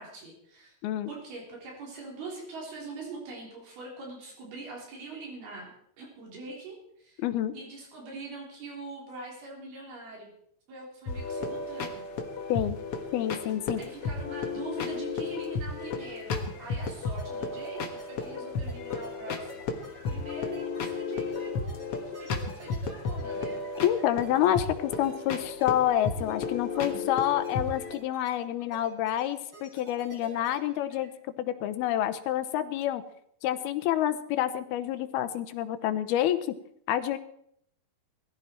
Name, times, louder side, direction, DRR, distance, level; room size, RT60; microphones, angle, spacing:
voice 1, 0.0-0.7 1.1-7.2 7.5-10.3 10.7-12.1 13.8-19.6 20.1-23.6 26.9-27.1, right 3 dB, 70° right, -1 dB, 5.6 m, -43 dB
voice 2, 7.2-7.5 12.5-12.8 13.1-13.8 23.8-31.1 31.4-33.0 33.4-36.4 36.9-37.2, left 12 dB, 80° left, 11 dB, 2.8 m, -28 dB
sound 1, 11.1-27.9, left 4 dB, 55° left, 1.7 m, -34 dB
sound 2, 16.4-31.1, right 2 dB, 30° right, 7.9 m, -50 dB
19.5 x 15.0 x 4.5 m, 0.69 s
omnidirectional pair, 4.6 m